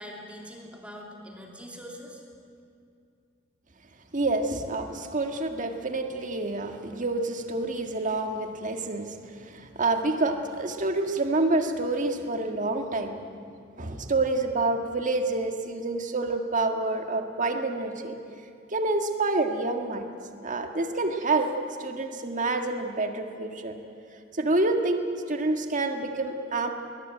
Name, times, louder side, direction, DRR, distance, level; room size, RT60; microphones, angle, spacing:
voice 1, 0.0-2.2, equal, 5° right, 0 dB, 2.9 m, -43 dB
voice 2, 4.1-13.2 13.8-18.1 18.7-20.0 20.4-21.5 21.8-23.7 24.4-25.0 25.3-26.7, right 2 dB, 40° right, 5 dB, 1.8 m, -28 dB
21.0 x 20.5 x 9.2 m, 2.4 s
head